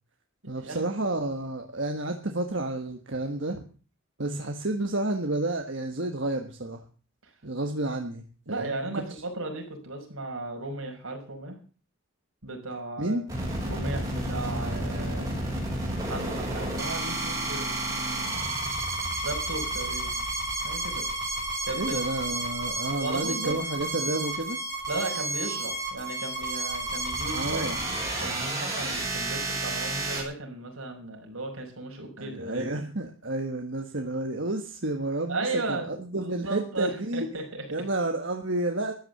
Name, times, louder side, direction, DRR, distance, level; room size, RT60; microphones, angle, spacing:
voice 1, 0.5-3.6 4.2-6.8 7.4-8.2 8.5-9.0 13.0-13.2 21.7-24.6 27.3-27.8 32.2-37.3 37.7-38.9, right 2 dB, 60° right, 4 dB, 1.5 m, -30 dB
voice 2, 8.5-11.6 12.4-13.2 13.7-15.3 16.1-18.5 19.2-20.2 20.6-21.1 21.6-22.0 22.9-23.6 24.9-27.7 28.2-32.7 35.3-37.7, right 2 dB, 80° right, 2 dB, 5.6 m, -35 dB
sound 1, 13.3-30.2, right 2 dB, 15° right, 7.0 m, -31 dB
14.0 x 9.7 x 7.8 m, 0.39 s
head